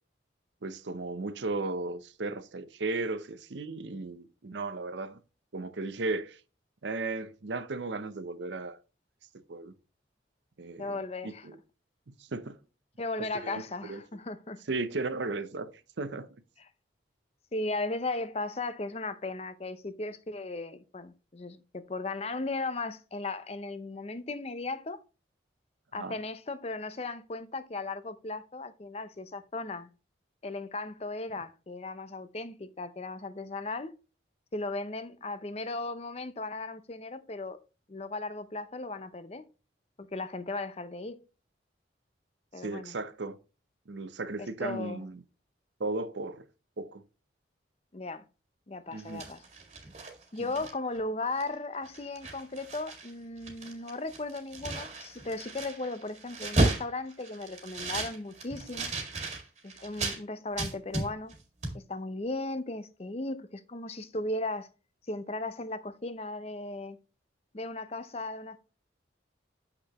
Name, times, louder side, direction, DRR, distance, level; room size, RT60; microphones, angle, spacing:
voice 1, 0.6-5.2 5.5-6.4 6.8-8.8 9.5-9.7 10.6-11.6 12.1-12.6 13.4-14.0 14.7-15.7 16.0-16.3 26.0-26.2 42.6-43.4 43.9-45.2 45.8-46.4 46.8-47.0 48.9-49.2, right 3 dB, 80° right, 0.7 m, -35 dB
voice 2, 10.8-11.5 13.0-14.6 17.5-25.0 25.9-29.9 30.4-33.9 34.5-37.6 37.9-39.4 40.0-41.2 42.5-42.9 44.4-45.0 47.9-48.2 48.7-49.4 50.3-58.9 59.6-61.3 61.7-64.7 65.1-67.0 67.5-68.6, left 2 dB, 35° left, 0.6 m, -36 dB
sound 1, 48.9-51.0 51.4-51.5 51.8-53.1 53.4-60.2 60.6-61.4 61.6-61.8, right 2 dB, 40° right, 2.0 m, -34 dB
7.8 x 5.8 x 3.0 m
head